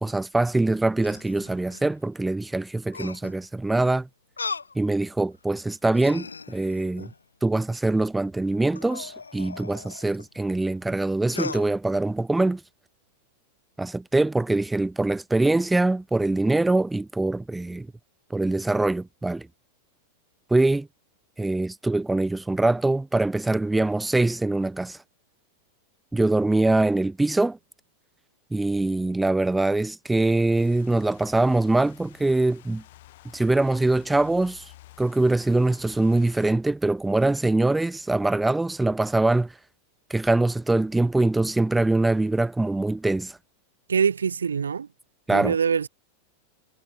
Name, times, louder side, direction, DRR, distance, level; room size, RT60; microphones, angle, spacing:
voice 1, 0.0-4.1 4.7-7.1 7.4-12.6 13.8-17.9 18.3-19.5 20.5-20.9 21.4-25.0 26.1-27.6 28.5-32.8 33.3-34.6 35.0-39.5 40.1-43.4 45.3-45.6, right 2 dB, 5° right, 0.9 m, -23 dB
sound 1, 0.6-1.9 2.9-3.5 4.4-4.8 5.3-5.4 5.9-7.2 8.7-10.3 11.3-11.7, left 4 dB, 75° left, 4.1 m, -38 dB
sound 2, 30.6-36.6, left 17 dB, 55° left, 4.9 m, -51 dB
voice 2, 43.9-44.9 45.3-45.9, right 6 dB, 70° right, 2.3 m, -24 dB
figure-of-eight pair, 90°, 0 cm